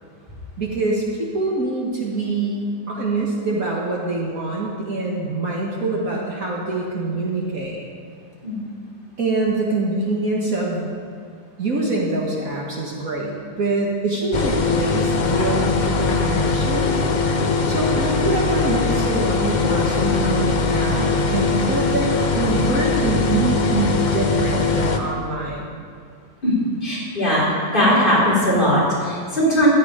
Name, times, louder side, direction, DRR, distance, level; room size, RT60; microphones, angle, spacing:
voice 1, 0.6-1.1 1.3-7.8 9.2-11.0 11.6-16.9 17.7-22.1 22.4-25.8, right 2 dB, 50° right, -2 dB, 1.9 m, -24 dB
sound 1, 14.3-25.0, left 4 dB, 45° left, 0.6 m, -21 dB
voice 2, 26.8-27.4 27.7-29.7, equal, 25° left, -7 dB, 4.2 m, -19 dB
15.0 x 11.5 x 5.0 m, 2.2 s
omnidirectional pair, 1.9 m